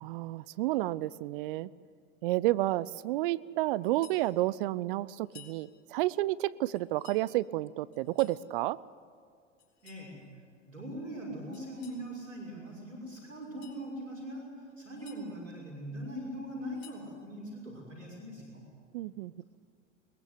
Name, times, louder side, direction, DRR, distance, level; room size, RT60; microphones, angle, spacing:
voice 1, 0.0-1.7 2.2-8.8 11.3-11.4 18.9-19.4, right 17 dB, 45° right, 20 dB, 0.6 m, -31 dB
sound 1, 3.8-4.3 5.2-5.6 6.7-7.2 7.9-8.4 9.6-10.1 11.5-12.0 13.4-13.8 14.7-15.2 16.5-17.1, left 10 dB, 55° left, 4.4 m, -56 dB
voice 2, 9.8-10.1 10.7-18.6, equal, 90° right, -3 dB, 6.2 m, -41 dB
22.0 x 21.5 x 8.0 m, 2.2 s
figure-of-eight pair, 85°, 37 cm